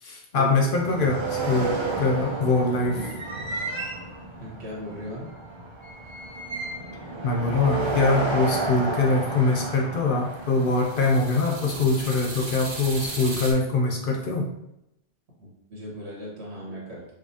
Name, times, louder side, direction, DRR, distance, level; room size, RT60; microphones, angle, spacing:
voice 1, 0.0-3.1 7.2-14.5, left 3 dB, 60° left, 1 dB, 0.7 m, -23 dB
sound 1, 0.7-13.5, right 3 dB, 40° right, 0.4 m, -32 dB
voice 2, 4.4-5.3 15.4-17.1, equal, 80° right, -4 dB, 1.5 m, -37 dB
5.0 x 2.0 x 2.7 m, 0.84 s
omnidirectional pair, 1.1 m